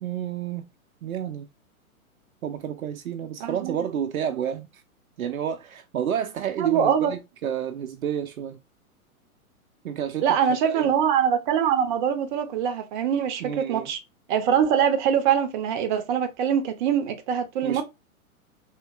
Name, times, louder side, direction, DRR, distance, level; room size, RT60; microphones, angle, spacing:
voice 1, 0.0-0.7 1.0-1.5 2.4-4.8 5.2-8.6 9.8-10.9 13.4-13.9 17.6-17.8, right 8 dB, 70° right, 0.5 m, -30 dB
voice 2, 3.4-3.7 6.6-7.1 10.2-14.0 14.3-17.8, right 8 dB, 35° right, 0.7 m, -23 dB
3.6 x 2.8 x 2.5 m
figure-of-eight pair, 115°, 43 cm